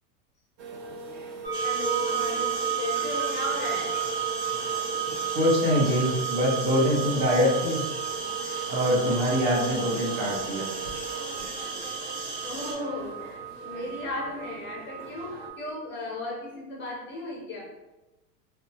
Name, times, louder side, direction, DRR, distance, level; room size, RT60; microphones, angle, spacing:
sound 1, 0.6-15.5, right 4 dB, 40° right, 0.5 m, -40 dB
sound 2, 1.4-15.7, right 8 dB, 15° right, 0.9 m, -33 dB
sound 3, 1.5-12.7, right 3 dB, 80° right, 1.2 m, -37 dB
voice 1, 1.6-4.0 12.4-17.7, left 1 dB, 25° left, -3 dB, 0.5 m, -35 dB
voice 2, 5.3-7.8 8.7-10.7, equal, 55° right, -2 dB, 1.2 m, -24 dB
2.7 x 2.3 x 2.7 m, 1.0 s
supercardioid pair, 125°, 48 cm